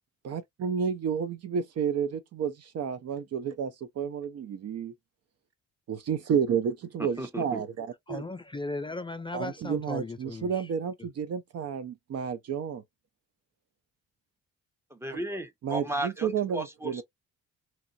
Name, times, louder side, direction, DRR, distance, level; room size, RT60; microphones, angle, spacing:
voice 1, 0.2-4.9 5.9-8.2 9.3-12.8 15.1-15.2 15.6-17.0, right 7 dB, 55° right, 0.6 m, -31 dB
voice 2, 7.0-7.6 14.9-17.0, right 1 dB, 10° right, 0.8 m, -35 dB
voice 3, 8.1-10.7, left 2 dB, 15° left, 0.3 m, -37 dB
2.9 x 2.4 x 2.6 m
cardioid pair, 90°, 30 cm